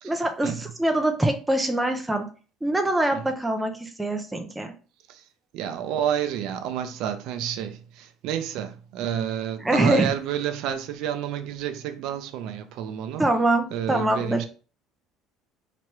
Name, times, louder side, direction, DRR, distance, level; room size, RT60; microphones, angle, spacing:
voice 1, 0.0-2.3 2.6-4.7 9.6-10.1 13.2-14.5, right 1 dB, 5° right, 0.5 m, -24 dB
voice 2, 5.5-13.2 13.7-14.5, right 10 dB, 65° right, 0.5 m, -29 dB
3.0 x 3.0 x 4.5 m
cardioid pair, 160°, 0 cm